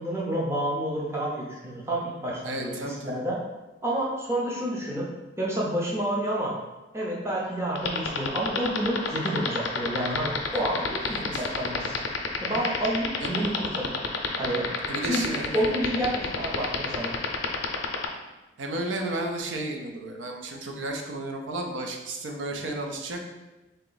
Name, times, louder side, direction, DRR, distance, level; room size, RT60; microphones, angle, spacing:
voice 1, 0.0-3.4 3.8-5.0 5.4-6.5 6.9-11.9 12.4-14.0 14.4-14.7 15.0-17.1, right 1 dB, 15° right, -4 dB, 0.6 m, -29 dB
voice 2, 2.4-3.2 10.5-10.6 11.1-11.5 13.2-13.5 14.9-15.6 18.6-23.2, right 2 dB, 85° right, 2 dB, 0.6 m, -33 dB
sound 1, 7.7-18.1, left 6 dB, 85° left, 0.5 m, -27 dB
3.8 x 2.9 x 3.9 m, 1.1 s
head